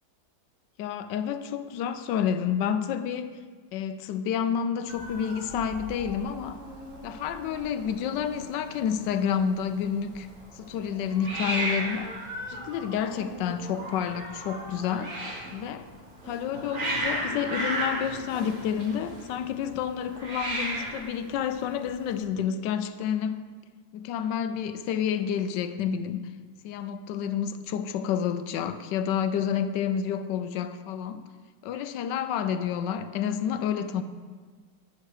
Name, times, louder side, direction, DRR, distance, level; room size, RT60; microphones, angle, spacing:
voice 1, 0.8-3.4 3.7-6.6 7.0-10.3 10.5-12.1 12.5-15.1 15.5-15.9 16.3-23.4 23.9-26.3 26.6-31.2 31.6-34.0, left 8 dB, 75° left, 1.2 m, -29 dB
Hiss, 4.9-22.2, right 1 dB, 40° right, 1.6 m, -36 dB
9.3 x 6.3 x 4.8 m
omnidirectional pair, 2.0 m